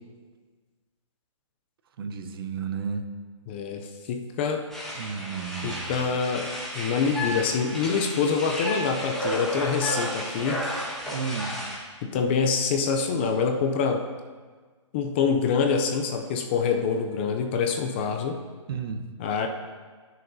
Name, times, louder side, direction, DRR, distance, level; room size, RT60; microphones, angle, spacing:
voice 1, 2.0-3.1 4.9-5.9 11.1-11.6 18.7-19.0, right 6 dB, 45° right, 7 dB, 0.8 m, -32 dB
voice 2, 3.5-4.7 5.6-10.7 12.0-14.1 14.9-18.4 19.2-19.5, left 5 dB, 20° left, 5 dB, 0.4 m, -26 dB
sound 1, 4.7-11.8, equal, ahead, 1.4 m, -33 dB
18.5 x 6.5 x 2.7 m, 1.5 s
hypercardioid pair, 160°, 16 cm